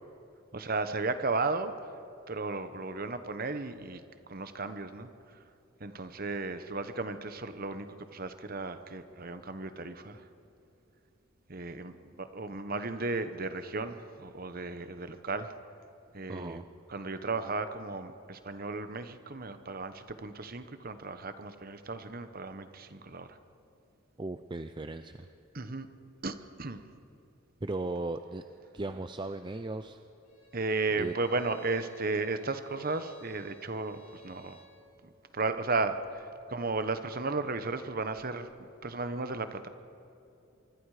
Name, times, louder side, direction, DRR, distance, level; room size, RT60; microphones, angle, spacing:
voice 1, 0.5-1.7 2.3-4.0 4.3-5.4 5.8-10.3 11.5-15.5 16.1-16.6 16.9-23.4 25.5-25.9 26.2-26.8 30.5-34.6 35.3-39.7, right 3 dB, 45° right, 10 dB, 1.1 m, -35 dB
voice 2, 16.3-16.7 24.2-25.3 27.6-28.4 28.7-30.0 31.0-31.1, right 2 dB, 20° right, 9 dB, 0.5 m, -37 dB
Bowed string instrument, 30.2-34.8, right 5 dB, 90° left, 5.3 m, -57 dB
25.0 x 24.0 x 5.0 m, 2.6 s
head